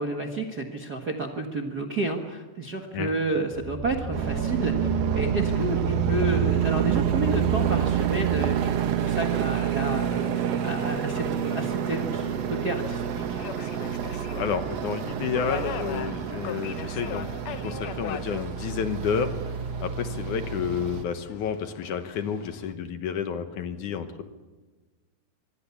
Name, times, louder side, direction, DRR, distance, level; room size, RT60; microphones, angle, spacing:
voice 1, 0.0-13.4, right 2 dB, 45° right, 2 dB, 1.3 m, -31 dB
sound 1, 3.5-8.6, right 4 dB, 80° right, 6.8 m, -32 dB
sound 2, 4.1-21.0, right 9 dB, 65° right, 1.7 m, -28 dB
Subway metro underground, 9.1-22.7, left 11 dB, 90° left, 1.5 m, -42 dB
voice 2, 14.4-19.3 19.8-24.2, left 7 dB, 65° left, 8 dB, 2.3 m, -30 dB
25.5 x 22.5 x 7.1 m, 1.3 s
omnidirectional pair, 4.2 m